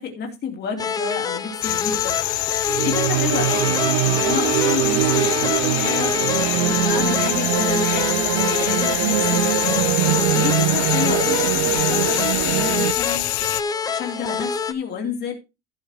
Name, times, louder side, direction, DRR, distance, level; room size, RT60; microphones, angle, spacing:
voice 1, 0.0-2.2 2.8-9.9 10.3-13.3 13.9-15.3, left 6 dB, 30° left, 2.7 m, -30 dB
sound 1, 0.8-14.7, left 5 dB, 10° left, 0.5 m, -27 dB
sound 2, 1.6-13.6, left 22 dB, 60° left, 0.5 m, -25 dB
sound 3, 2.7-12.9, right 15 dB, 85° right, 0.8 m, -23 dB
16.0 x 6.3 x 3.2 m
cardioid pair, 175°, 34 cm